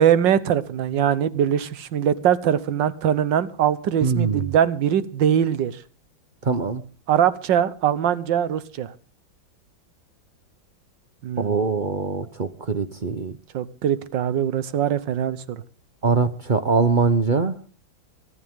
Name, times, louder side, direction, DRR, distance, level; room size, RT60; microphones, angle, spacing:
voice 1, 0.0-5.7 7.1-8.9 11.2-11.6 13.5-15.6, right 9 dB, 65° right, 1.7 m, -22 dB
voice 2, 4.0-4.4 6.4-6.8 11.4-13.3 16.0-17.6, right 4 dB, 50° right, 0.5 m, -22 dB
23.5 x 12.5 x 3.6 m
omnidirectional pair, 2.2 m